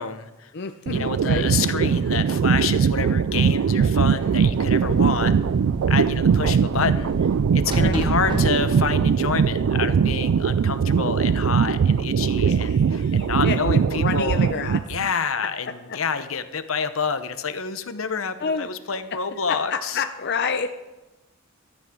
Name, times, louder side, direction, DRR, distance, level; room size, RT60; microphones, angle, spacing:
voice 1, 0.0-0.5 0.9-5.3 5.9-7.1 7.5-14.4 14.9-20.0, left 5 dB, 80° left, 10 dB, 1.0 m, -28 dB
voice 2, 0.5-1.5 7.8-8.0 12.4-14.8 15.9-16.0 18.4-18.7 19.5-20.7, left 5 dB, 55° left, 7 dB, 0.6 m, -29 dB
sound 1, 0.9-15.1, right 6 dB, 75° right, 0.3 m, -21 dB
sound 2, 3.6-10.4, equal, 20° right, 1.5 m, -32 dB
15.5 x 13.5 x 3.8 m, 1.1 s
head